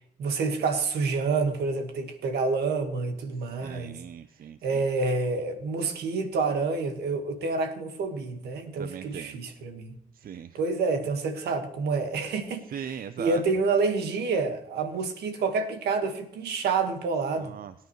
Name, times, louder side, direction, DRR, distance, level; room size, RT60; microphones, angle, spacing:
voice 1, 0.2-4.0 4.6-10.0 10.5-17.5, right 4 dB, 80° right, 6 dB, 1.7 m, -28 dB
voice 2, 3.4-4.8 8.8-9.4 10.1-10.6 12.7-13.4 17.4-17.7, right 8 dB, 60° right, 13 dB, 0.6 m, -39 dB
23.5 x 9.5 x 3.2 m, 0.74 s
supercardioid pair, 50°, 17 cm